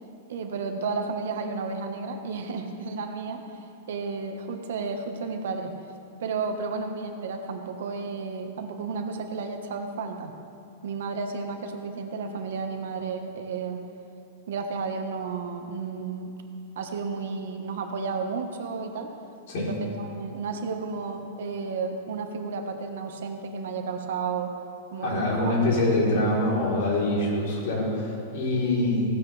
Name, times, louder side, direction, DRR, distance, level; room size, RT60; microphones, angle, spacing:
voice 1, 0.3-3.4 3.9-5.7 6.2-10.3 10.8-13.8 14.5-16.3 16.7-19.1 19.5-24.6 24.9-25.5, right 4 dB, 65° right, 4 dB, 1.4 m, -32 dB
voice 2, 25.0-29.0, left 1 dB, 50° left, -4 dB, 3.9 m, -25 dB
16.5 x 16.0 x 3.4 m, 2.6 s
supercardioid pair, 175°, 0 cm